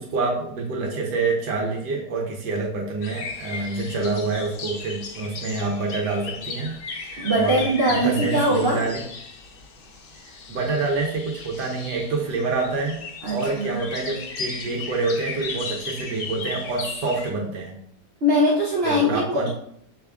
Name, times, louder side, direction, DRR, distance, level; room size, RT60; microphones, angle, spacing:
voice 1, 0.0-6.8 7.0-9.0 10.5-17.7 18.8-19.5, right 3 dB, 85° right, -2 dB, 1.4 m, -27 dB
sound 1, 3.0-17.3, left 4 dB, 85° left, 0.5 m, -36 dB
voice 2, 7.2-8.8 13.2-13.8 18.2-19.5, equal, 60° right, -4 dB, 0.6 m, -21 dB
6.2 x 2.4 x 3.4 m, 0.69 s
omnidirectional pair, 1.8 m